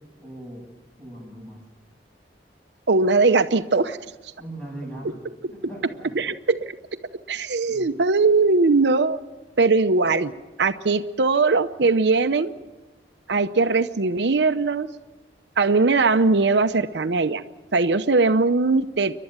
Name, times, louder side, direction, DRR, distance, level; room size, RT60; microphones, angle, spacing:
voice 1, 0.2-0.6 1.0-1.6 4.4-5.2 5.5-6.1 7.7-7.9, right 1 dB, 10° left, -1 dB, 8.0 m, -39 dB
voice 2, 2.9-4.0 5.0-5.1 5.4-5.5 6.1-6.8 7.3-9.2 9.6-10.3 10.6-12.5 13.3-14.9 15.6-17.4 17.7-19.1, right 3 dB, 80° right, 9 dB, 0.8 m, -20 dB
28.5 x 12.0 x 8.8 m, 1.2 s
head